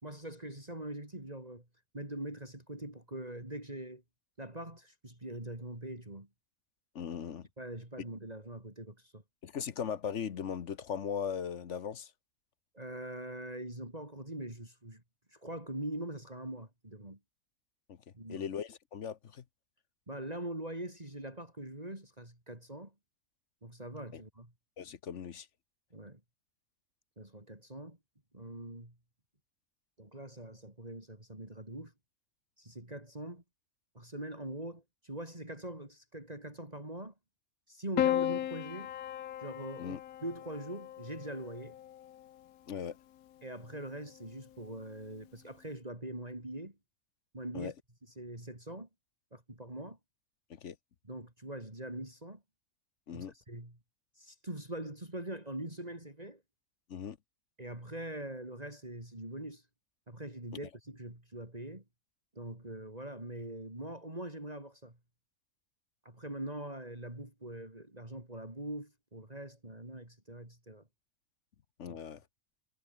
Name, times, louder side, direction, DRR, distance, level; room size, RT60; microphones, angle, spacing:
voice 1, 0.0-1.6 1.9-4.0 4.4-6.3 7.6-9.2 12.7-15.0 15.3-17.2 18.1-18.5 20.1-22.9 23.6-24.5 25.9-26.2 27.2-28.0 28.3-28.9 30.0-31.9 32.6-33.4 33.9-37.1 37.7-38.9 39.4-41.8 43.4-46.8 47.3-47.7 48.0-48.9 49.3-50.0 51.0-52.4 53.1-53.8 54.1-56.4 57.6-59.7 60.1-61.8 62.3-65.0 66.0-70.9 71.9-72.0, right 1 dB, 25° right, 4.4 m, -43 dB
voice 2, 6.9-7.5 9.4-12.1 17.9-18.0 18.3-19.4 24.8-25.5 39.8-40.0 42.7-43.0 47.5-47.7 50.5-50.8 53.1-53.3 56.9-57.2 71.8-72.2, left 7 dB, 55° left, 1.3 m, -38 dB
Piano, 38.0-42.4 43.6-44.3, left 11 dB, 75° left, 1.3 m, -36 dB
omnidirectional pair, 1.5 m